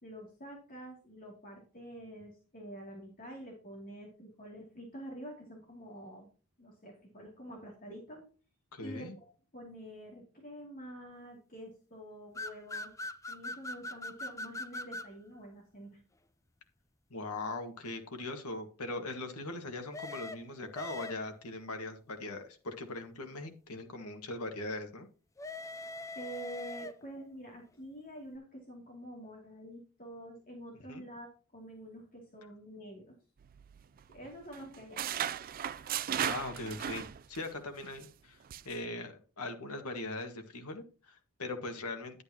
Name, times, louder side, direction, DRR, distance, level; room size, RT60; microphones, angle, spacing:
voice 1, 0.0-6.3 6.6-8.2 8.8-12.9 13.3-16.0 26.1-33.1 34.1-35.2, right 1 dB, 40° left, -1 dB, 2.6 m, -47 dB
voice 2, 8.7-9.2 17.1-25.1 30.9-31.0 36.2-38.4 38.6-42.2, left 2 dB, 80° left, 5 dB, 1.7 m, -40 dB
sound 1, 12.4-15.1 19.9-21.5 25.4-27.2, left 2 dB, 15° left, 0.5 m, -42 dB
sound 2, 33.4-34.3 34.5-37.5 37.8-38.1 38.5-38.8, right 9 dB, 40° right, 0.4 m, -36 dB
11.0 x 8.6 x 2.9 m, 0.37 s
head